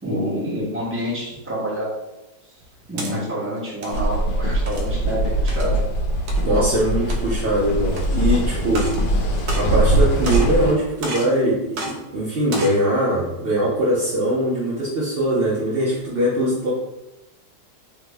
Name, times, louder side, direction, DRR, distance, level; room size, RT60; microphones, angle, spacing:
voice 1, 0.0-1.9 2.9-5.7, equal, 10° right, -7 dB, 0.6 m, -27 dB
sound 1, 2.6-3.1 3.7-4.0 4.7-4.9 5.5-5.7 6.3-6.4 7.0-7.4 7.9-8.0 8.6-9.0 9.3-10.0 10.2-10.6 11.0-11.3 11.7-11.9 12.4-12.8, right 2 dB, 70° right, 1.0 m, -31 dB
sound 2, 3.9-10.7, right 1 dB, 80° left, 1.2 m, -21 dB
voice 2, 6.4-16.7, right 1 dB, 90° right, -7 dB, 0.5 m, -22 dB
3.3 x 2.0 x 3.3 m, 0.94 s
omnidirectional pair, 1.9 m